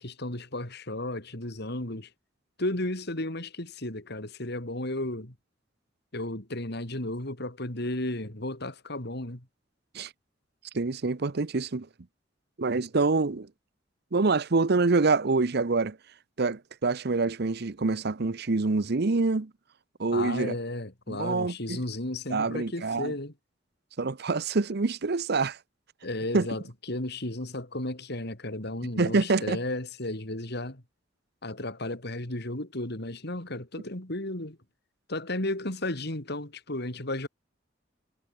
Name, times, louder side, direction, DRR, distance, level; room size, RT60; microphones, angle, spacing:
voice 1, 0.0-2.1 2.6-5.3 6.1-9.5 20.1-23.3 26.0-26.6 26.9-30.8 31.4-34.6 35.1-37.3, left 1 dB, 60° left, 3.8 m, -34 dB
voice 2, 10.7-11.9 12.6-13.5 14.1-16.0 16.4-19.5 20.0-20.5 21.1-21.8 22.3-23.1 24.0-25.6 26.3-26.5 29.0-29.6, right 3 dB, 60° right, 0.8 m, -26 dB
head